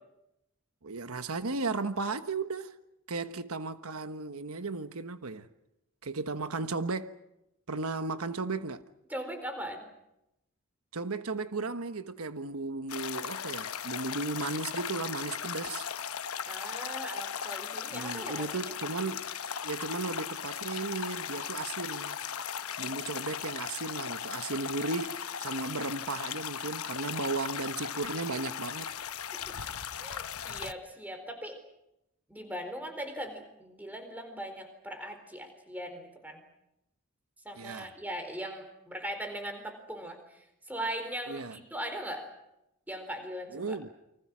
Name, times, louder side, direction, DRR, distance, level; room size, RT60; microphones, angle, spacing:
voice 1, 0.8-2.7 3.1-5.5 6.0-7.2 7.7-8.8 10.9-15.9 17.9-19.3 19.6-22.2 22.8-28.9 37.5-37.9 41.3-41.6 43.5-43.9, right 3 dB, 90° right, 1.2 m, -35 dB
voice 2, 9.1-9.9 16.5-18.7 22.8-23.2 30.0-31.6 32.3-36.4 37.4-42.3 42.9-43.8, equal, 10° right, 4.2 m, -40 dB
sound 1, 12.9-30.7, left 8 dB, 90° left, 1.0 m, -37 dB
29.5 x 25.0 x 6.2 m
head